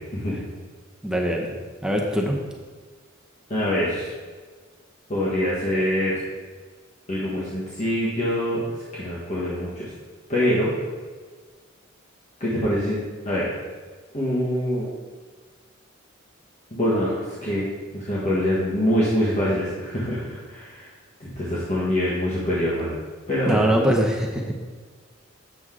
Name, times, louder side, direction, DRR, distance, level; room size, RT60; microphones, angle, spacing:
voice 1, 1.0-1.5 1.8-2.4 23.4-24.5, equal, 5° right, 0 dB, 0.7 m, -22 dB
voice 2, 3.5-4.1 5.1-6.2 7.1-8.7 8.9-9.9 10.3-10.7 12.4-13.5 14.1-14.9 16.7-17.6 17.9-20.9 21.2-23.0 23.3-23.7, equal, 35° left, -8 dB, 1.4 m, -24 dB
7.9 x 6.2 x 3.7 m, 1.5 s
head